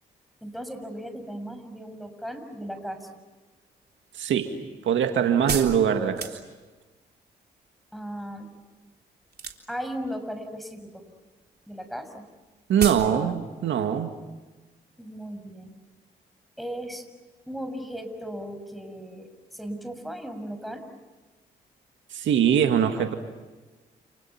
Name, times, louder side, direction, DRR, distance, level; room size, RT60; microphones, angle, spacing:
voice 1, 0.4-3.1 7.9-8.5 9.7-11.0 11.7-12.2 15.0-15.8 16.6-17.1 17.5-20.8, equal, ahead, 7 dB, 6.6 m, -36 dB
sound 1, 3.9-6.9 9.3-9.9 10.2-10.8 11.1-11.3 11.6-11.7 11.8-11.9 12.3-12.4 12.8-13.1 13.4-13.5, right 5 dB, 55° right, 3.6 m, -32 dB
voice 2, 4.2-4.5 4.8-6.3 12.7-14.1 22.1-23.1, right 8 dB, 80° right, 6 dB, 2.0 m, -22 dB
30.0 x 29.5 x 5.9 m, 1.2 s
supercardioid pair, 50°, 20 cm